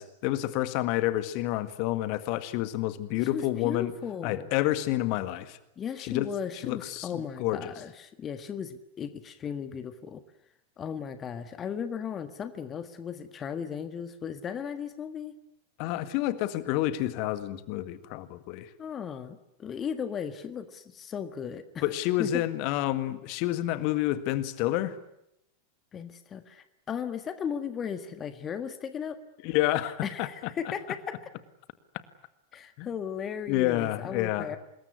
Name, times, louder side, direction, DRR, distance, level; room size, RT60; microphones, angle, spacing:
voice 1, 0.0-3.9 4.2-5.6 6.0-6.3 6.6-7.7 15.8-18.7 21.8-25.0 29.4-30.3 32.8-32.9 33.5-34.6, left 15 dB, 45° left, 12 dB, 1.8 m, -29 dB
voice 2, 3.3-4.5 5.8-10.2 10.8-15.3 18.8-21.8 22.2-22.4 25.9-29.2 30.0-31.2 32.5-34.6, left 7 dB, 25° left, 10 dB, 1.6 m, -36 dB
26.0 x 21.0 x 9.6 m, 0.81 s
figure-of-eight pair, 90°, 0 cm